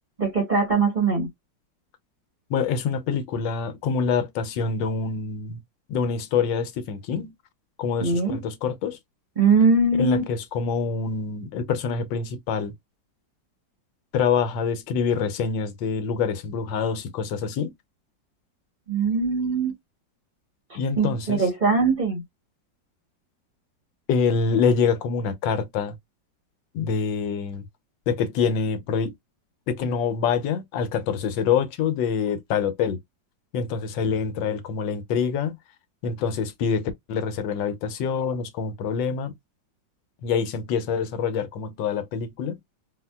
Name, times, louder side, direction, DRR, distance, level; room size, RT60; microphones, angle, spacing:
voice 1, 0.2-1.3 8.0-8.4 9.4-10.3 18.9-19.7 20.7-22.2, right 4 dB, 35° right, 0.8 m, -21 dB
voice 2, 2.5-5.6 5.9-7.3 7.8-9.0 10.0-12.7 14.1-17.7 20.8-21.4 24.1-25.9 26.7-27.6 28.1-29.1 29.7-33.0 33.5-35.6 36.0-39.3 40.2-42.6, left 6 dB, 85° left, 1.4 m, -26 dB
4.1 x 2.1 x 2.2 m
omnidirectional pair, 2.0 m